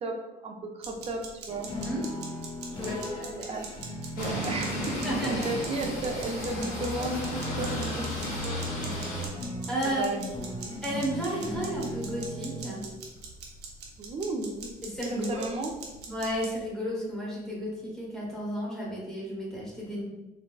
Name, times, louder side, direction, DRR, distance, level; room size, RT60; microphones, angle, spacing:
voice 1, 0.0-1.7 3.0-3.7 4.2-5.1 5.5-7.2 7.6-8.1 8.4-9.1 9.8-10.3 14.0-14.7 15.1-15.7, right 2 dB, 35° right, 3 dB, 0.5 m, -34 dB
sound 1, 0.8-16.6, right 4 dB, 80° right, 0.6 m, -43 dB
sound 2, 1.5-12.6, left 1 dB, 30° left, 0.7 m, -38 dB
voice 2, 2.7-3.5 5.0-5.5 9.7-10.0 10.8-12.8 14.9-15.4 16.1-20.0, equal, 5° left, -5 dB, 1.0 m, -32 dB
sound 3, 4.1-9.3, left 1 dB, 55° left, 1.2 m, -34 dB
3.8 x 2.1 x 2.3 m, 1.1 s
cardioid pair, 110°, 17 cm